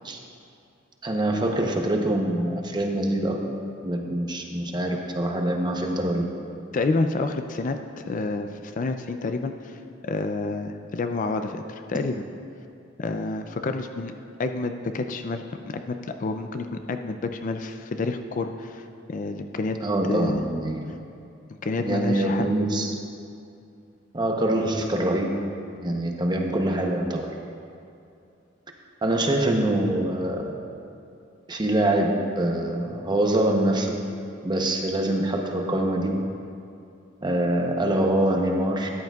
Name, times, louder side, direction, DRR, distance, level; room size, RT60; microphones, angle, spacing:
voice 1, 1.0-3.4 3.8-6.3 19.8-20.9 21.8-22.9 24.1-25.4 25.8-27.3 29.0-30.5 31.5-34.0 34.4-36.1 37.2-38.9, right 1 dB, 25° right, 2 dB, 0.8 m, -24 dB
voice 2, 6.7-9.8 10.1-12.2 13.0-14.1 14.4-19.8 20.1-20.4 21.6-22.5, left 3 dB, 40° left, 7 dB, 0.4 m, -29 dB
13.0 x 10.5 x 2.4 m, 2.6 s
head